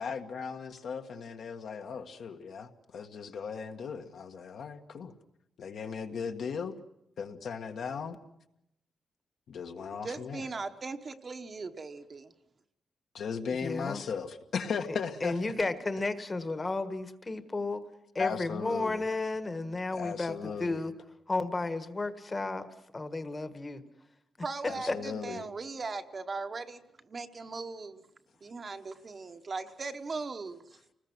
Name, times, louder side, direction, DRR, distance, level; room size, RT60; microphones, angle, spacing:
voice 1, 0.0-5.1 5.6-6.7 7.2-8.2 9.5-10.4 13.1-15.4 18.2-19.0 19.9-20.8 24.7-25.5, left 6 dB, 60° left, 5 dB, 1.6 m, -37 dB
voice 2, 10.0-12.3 24.4-26.8 27.1-28.0 28.4-30.6, right 4 dB, 30° right, 7 dB, 1.1 m, -39 dB
voice 3, 13.6-14.0 15.2-17.8 18.1-20.9 21.3-22.7 22.9-23.8 24.6-25.1, left 3 dB, 20° left, 10 dB, 1.4 m, -33 dB
30.0 x 20.0 x 6.1 m, 0.82 s
wide cardioid pair, 170°, 0 cm